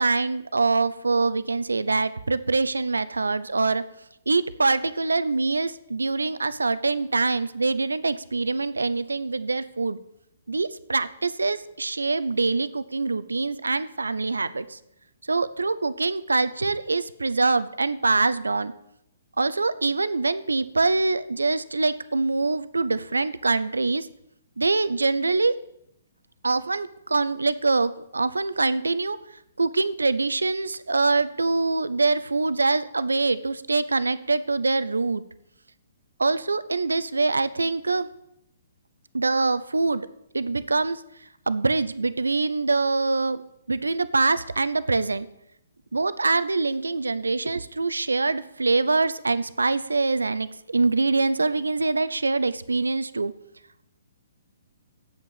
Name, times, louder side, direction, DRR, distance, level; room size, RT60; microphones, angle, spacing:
voice 1, 0.0-3.8 4.3-10.0 10.5-14.8 15.3-18.7 19.4-24.1 24.6-25.5 26.4-29.2 29.6-35.2 36.2-38.1 39.1-40.1 40.3-41.0 41.5-43.4 43.7-45.3 45.9-53.3, right 3 dB, 85° right, 14 dB, 0.7 m, -24 dB
8.3 x 7.9 x 8.9 m, 0.80 s
figure-of-eight pair, 130°, 0 cm